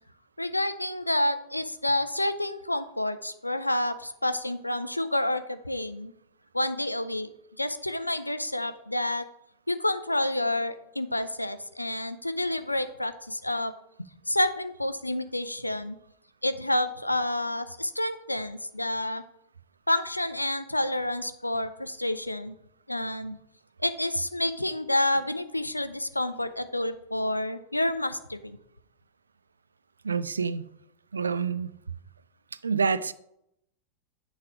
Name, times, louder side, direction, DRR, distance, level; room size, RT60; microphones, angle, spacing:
voice 1, 0.4-6.1 6.5-7.3 7.6-9.3 9.7-13.7 14.3-16.0 16.4-19.2 19.9-22.5 22.9-23.4 23.8-28.6, left 1 dB, 85° left, 0.4 m, -29 dB
voice 2, 30.0-30.7 31.1-31.7 32.6-33.1, right 5 dB, 75° right, 0.3 m, -27 dB
8.4 x 3.2 x 4.8 m
figure-of-eight pair, 90°, 0 cm